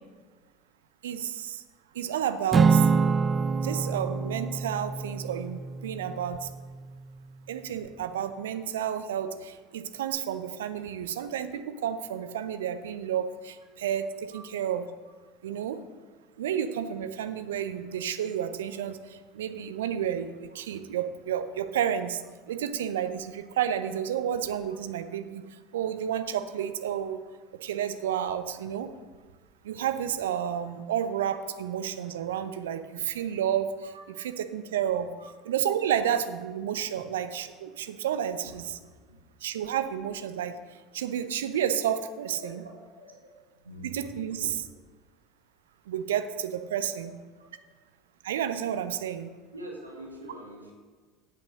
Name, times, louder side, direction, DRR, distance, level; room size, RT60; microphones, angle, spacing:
voice 1, 1.0-1.6 1.9-2.9 3.6-6.5 7.5-14.8 15.4-15.8 16.4-19.0 19.3-22.2 22.5-25.4 25.7-27.2 27.6-28.9 29.6-33.7 34.5-35.1 35.5-38.7 39.4-40.5 40.9-42.5 43.8-44.4 45.9-47.0 48.2-49.3, right 9 dB, 75° right, 10 dB, 0.7 m, -31 dB
Acoustic guitar / Strum, 2.5-7.0, right 5 dB, 30° right, 0.4 m, -26 dB
voice 2, 33.9-34.2 35.2-35.3 38.4-39.3 42.4-42.5 43.0-43.1 43.6-44.5 49.5-50.7, right 1 dB, 90° right, -1 dB, 1.7 m, -45 dB
8.5 x 7.7 x 6.4 m, 1.4 s
figure-of-eight pair, 70°, 0 cm